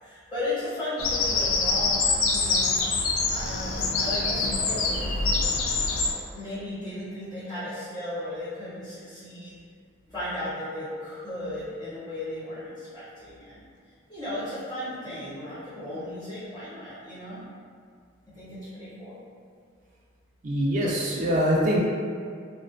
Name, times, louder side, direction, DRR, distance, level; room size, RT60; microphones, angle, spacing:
voice 1, 0.0-2.8 3.3-5.3 6.3-9.6 10.1-13.6 14.1-17.4 18.3-19.2, left 1 dB, 20° left, -12 dB, 1.1 m, -35 dB
Bird vocalization bird call bird song, 1.0-6.1, left 3 dB, 90° left, 0.4 m, -25 dB
voice 2, 20.4-21.8, equal, 40° right, -4 dB, 0.3 m, -23 dB
2.3 x 2.3 x 2.4 m, 2.2 s
head